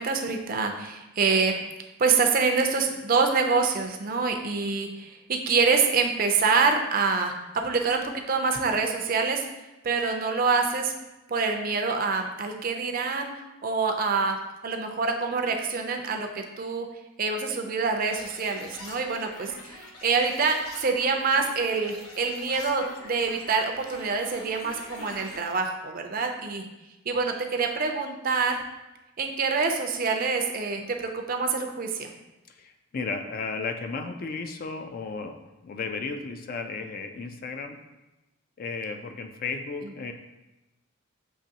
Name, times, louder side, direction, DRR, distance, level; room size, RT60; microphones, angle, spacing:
voice 1, 0.0-1.5 2.0-9.5 9.8-10.9 11.3-13.3 13.6-14.4 14.6-16.9 17.2-26.7 27.1-28.6 29.2-32.1, right 4 dB, 40° right, 4 dB, 0.5 m, -26 dB
sound 1, 18.1-25.5, left 2 dB, 85° left, 0.8 m, -45 dB
voice 2, 32.5-37.8 38.6-40.1, left 4 dB, 40° left, 6 dB, 0.3 m, -34 dB
6.4 x 2.9 x 2.8 m, 1.0 s
head